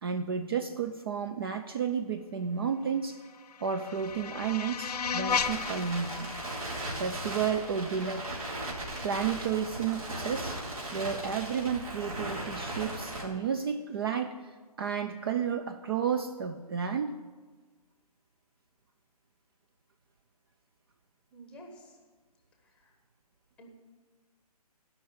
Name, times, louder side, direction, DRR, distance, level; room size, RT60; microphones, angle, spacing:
voice 1, 0.0-3.2 3.6-6.3 7.0-8.7 9.0-10.6 10.9-17.2, right 7 dB, 35° right, 7 dB, 0.5 m, -32 dB
sound 1, 3.0-8.1, left 6 dB, 75° left, 0.5 m, -36 dB
Crackle, 4.0-13.2, right 1 dB, 65° right, 3.4 m, -38 dB
voice 2, 21.3-22.0 22.6-22.9 23.6-23.7, right 1 dB, 5° left, 3 dB, 1.2 m, -51 dB
12.0 x 5.8 x 8.3 m, 1.4 s
figure-of-eight pair, 145°, 20 cm